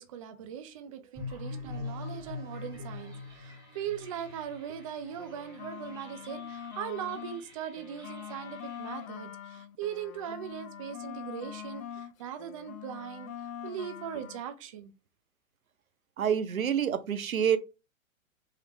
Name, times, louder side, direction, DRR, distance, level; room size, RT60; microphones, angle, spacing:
voice 1, 0.0-13.3 13.6-14.9, right 9 dB, 30° right, 0.3 m, -40 dB
sound 1, 1.1-9.0, left 3 dB, 10° right, 1.4 m, -44 dB
sound 2, 5.1-7.4 7.8-12.1 12.4-14.4, left 9 dB, 80° left, 0.6 m, -43 dB
voice 2, 16.2-17.6, right 8 dB, 85° right, 0.7 m, -27 dB
3.6 x 3.4 x 3.2 m
figure-of-eight pair, 115°, 40 cm